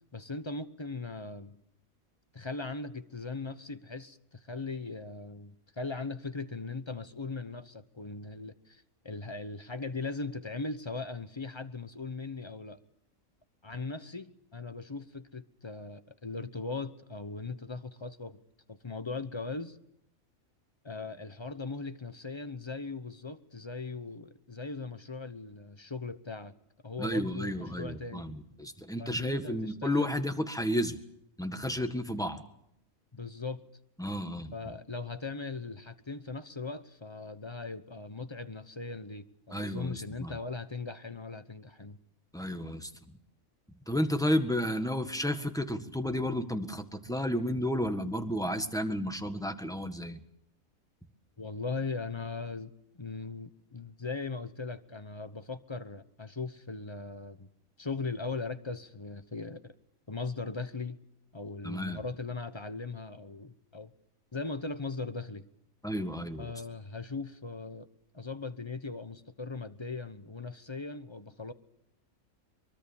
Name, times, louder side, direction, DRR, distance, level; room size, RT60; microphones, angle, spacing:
voice 1, 0.1-1.6 2.3-12.8 13.6-18.4 18.7-19.8 20.8-26.5 26.8-28.3 29.0-30.2 33.1-33.6 34.5-42.0 51.4-57.5 57.8-59.7 60.1-61.0 61.3-63.9 64.3-65.4 66.4-67.9 68.1-71.5, left 3 dB, 20° left, 11 dB, 0.9 m, -39 dB
voice 2, 27.0-31.0 31.4-32.4 34.0-34.5 39.5-40.4 42.3-42.9 43.9-50.2 61.6-62.0 65.8-66.5, equal, 5° left, 7 dB, 1.6 m, -32 dB
23.5 x 23.0 x 7.2 m, 0.75 s
omnidirectional pair, 1.4 m